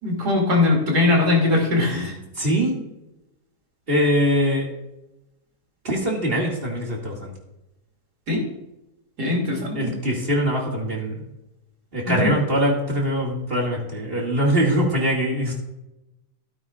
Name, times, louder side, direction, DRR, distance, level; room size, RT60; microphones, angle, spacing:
voice 1, 0.0-2.1 8.3-8.4 9.2-9.9 12.0-12.3, left 2 dB, 85° right, 0 dB, 3.3 m, -20 dB
voice 2, 2.4-2.8 3.9-4.7 5.8-7.3 9.7-11.2 11.9-15.5, equal, 35° right, -2 dB, 2.5 m, -22 dB
15.5 x 9.3 x 2.5 m, 0.92 s
omnidirectional pair, 1.7 m